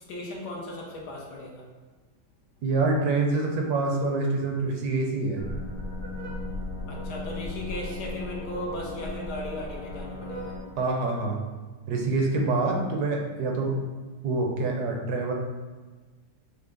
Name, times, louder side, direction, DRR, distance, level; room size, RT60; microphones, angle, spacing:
voice 1, 0.1-1.6 6.9-10.5, left 1 dB, 75° left, -2 dB, 1.4 m, -36 dB
voice 2, 2.6-5.4 10.8-11.4 11.9-13.8 14.2-15.3, right 3 dB, 75° right, 1 dB, 1.1 m, -26 dB
sound 1, 5.4-10.6, left 2 dB, 20° left, 0.4 m, -36 dB
5.7 x 2.1 x 3.8 m, 1.3 s
omnidirectional pair, 1.9 m